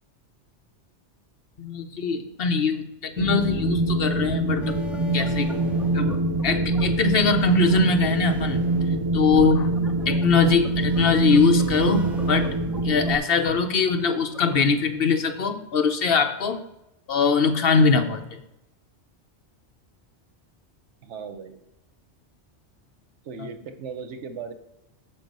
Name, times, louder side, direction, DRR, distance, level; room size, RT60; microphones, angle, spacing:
voice 1, 1.6-4.8 5.1-5.5 5.9-6.1 6.4-8.6 9.1-9.7 10.1-12.5 12.8-16.6 17.1-18.4, left 5 dB, 60° left, 7 dB, 0.9 m, -22 dB
Wind, 3.2-13.2, right 2 dB, 40° right, 0.3 m, -24 dB
sound 1, 4.6-15.0, left 1 dB, ahead, 0.8 m, -42 dB
voice 2, 21.0-21.6 23.2-24.5, right 5 dB, 90° right, 7 dB, 1.1 m, -37 dB
7.1 x 5.4 x 5.3 m, 0.89 s
omnidirectional pair, 1.2 m